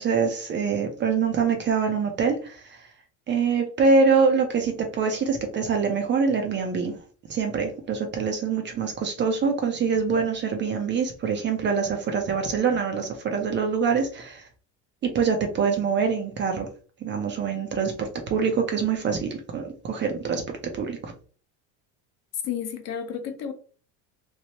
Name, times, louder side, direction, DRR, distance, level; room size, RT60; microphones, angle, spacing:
voice 1, 0.0-2.8 3.3-7.0 7.3-14.5 15.0-16.7 17.0-20.4 20.7-21.1, right 5 dB, 30° right, 0.4 m, -24 dB
voice 2, 22.4-23.5, left 8 dB, 45° left, 0.6 m, -31 dB
3.0 x 2.0 x 2.8 m
supercardioid pair, 125°, 39 cm